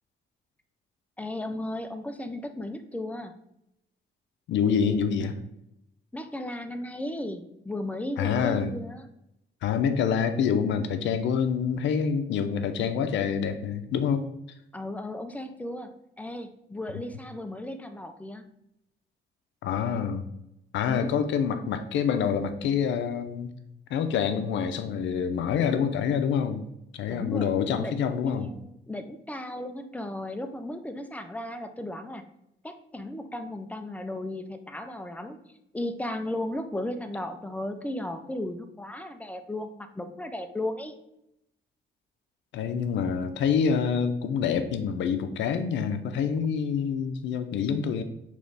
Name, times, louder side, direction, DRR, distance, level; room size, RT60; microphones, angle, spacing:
voice 1, 1.2-3.3 6.1-9.0 14.7-15.9 16.2-18.5 20.9-21.2 27.1-32.2 32.6-35.4 35.7-41.0, left 1 dB, 10° left, 8 dB, 0.3 m, -35 dB
voice 2, 4.5-5.3 8.2-8.7 9.6-14.3 19.6-20.2 20.7-23.5 23.9-26.6 26.9-28.5 42.5-48.0, left 7 dB, 85° left, 8 dB, 0.5 m, -26 dB
3.3 x 3.0 x 3.9 m, 0.83 s
cardioid pair, 120°, 19 cm